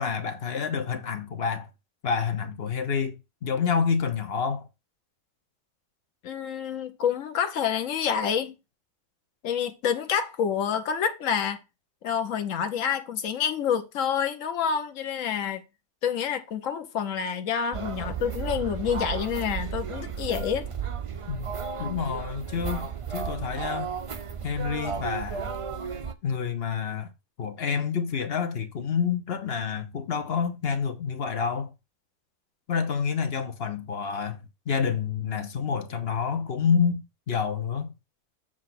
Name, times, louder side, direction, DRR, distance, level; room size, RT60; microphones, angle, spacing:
voice 1, 0.0-1.7 2.0-4.7 21.3-21.5 21.8-24.0 24.4-25.5 26.2-27.1 27.4-31.7 32.7-34.4 34.7-37.9, left 6 dB, 50° left, 1.1 m, -28 dB
voice 2, 6.2-8.6 9.4-11.6 12.0-15.6 16.0-20.7, left 8 dB, 70° left, 1.2 m, -28 dB
sound 1, 17.7-26.1, right 7 dB, 50° right, 0.4 m, -34 dB
7.6 x 3.3 x 5.9 m
omnidirectional pair, 1.4 m